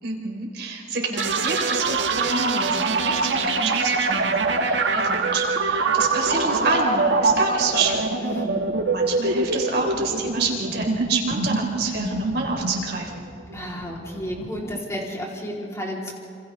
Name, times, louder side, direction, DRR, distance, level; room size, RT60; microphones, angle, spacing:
voice 1, 0.0-8.2 8.9-13.2, right 3 dB, 65° right, -1 dB, 4.2 m, -28 dB
sound 1, 1.2-14.8, right 3 dB, 85° right, 1.4 m, -24 dB
voice 2, 8.2-8.7 13.5-16.1, equal, 15° left, -3 dB, 3.9 m, -31 dB
28.0 x 27.0 x 3.6 m, 2.6 s
head